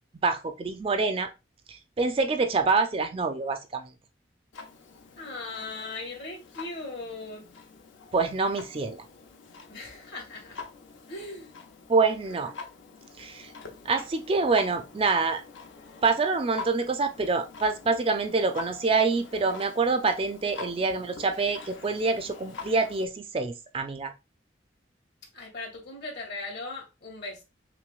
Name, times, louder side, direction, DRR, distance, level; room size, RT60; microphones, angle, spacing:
voice 1, 0.2-1.3 1.7-3.9 8.1-9.0 11.9-12.5 13.2-13.5 13.9-15.4 16.0-24.1, right 4 dB, 30° right, 0.4 m, -26 dB
Clock, 4.5-23.1, left 4 dB, 85° left, 0.7 m, -46 dB
voice 2, 5.2-7.5 9.7-10.6 11.1-11.5 25.3-27.4, left 3 dB, 60° left, 1.7 m, -38 dB
5.7 x 2.0 x 2.4 m
head